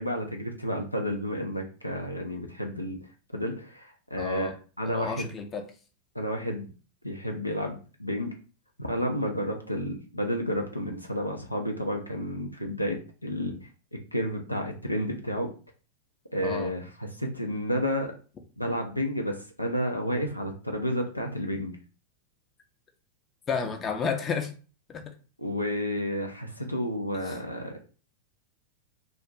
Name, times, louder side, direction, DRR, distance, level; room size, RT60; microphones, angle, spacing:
voice 1, 0.0-3.0 3.3-5.3 6.1-6.7 7.0-8.3 8.8-13.7 14.1-15.5 16.3-18.1 18.6-21.8 25.4-27.7, equal, 85° left, 2 dB, 0.5 m, -31 dB
voice 2, 4.2-4.5 4.8-5.6 16.4-16.7 23.5-24.5 24.9-25.0 27.3-27.4, left 5 dB, 25° left, 4 dB, 0.5 m, -31 dB
2.4 x 2.3 x 3.0 m, 0.36 s
figure-of-eight pair, 90°, 0 cm